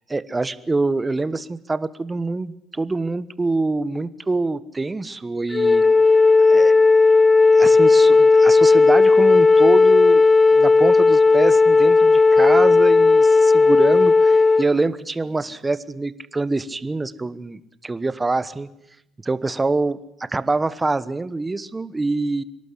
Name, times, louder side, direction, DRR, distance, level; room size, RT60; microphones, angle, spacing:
voice 1, 0.1-5.9 6.5-6.7 7.5-10.2 10.5-18.7 19.3-22.4, right 3 dB, 20° right, 17 dB, 1.2 m, -25 dB
Wind instrument woodwind instrument, 5.5-14.7, left 3 dB, 30° left, 0.9 m, -14 dB
26.0 x 12.0 x 10.0 m, 0.81 s
hypercardioid pair, 55°, 0 cm